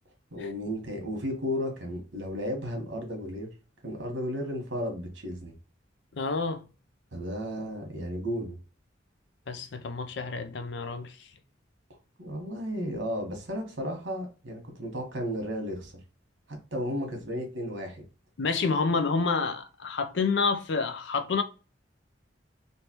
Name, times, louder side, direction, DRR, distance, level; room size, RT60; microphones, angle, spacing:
voice 1, 0.3-3.5 3.8-5.5 7.1-8.6 12.2-15.9 16.7-18.0, equal, 75° right, 1.4 m, -33 dB
voice 2, 6.1-6.7 9.5-11.2 18.4-21.4, left 4 dB, 70° left, 0.6 m, -28 dB
3.3 x 2.7 x 2.9 m
head